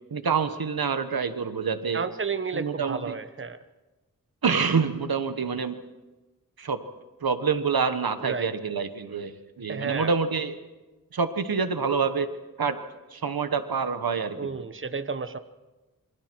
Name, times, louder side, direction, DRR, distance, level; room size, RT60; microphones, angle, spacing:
voice 1, 0.1-2.0 2.5-3.1 4.4-5.8 6.6-6.8 7.2-10.5 11.1-12.3 12.6-12.8 13.1-14.4, right 5 dB, 90° right, 10 dB, 1.3 m, -27 dB
voice 2, 1.9-3.6 8.2-8.5 9.7-10.1 14.3-15.4, right 5 dB, 35° right, 11 dB, 1.0 m, -32 dB
27.5 x 25.0 x 4.6 m, 1.1 s
wide cardioid pair, 50°, 35 cm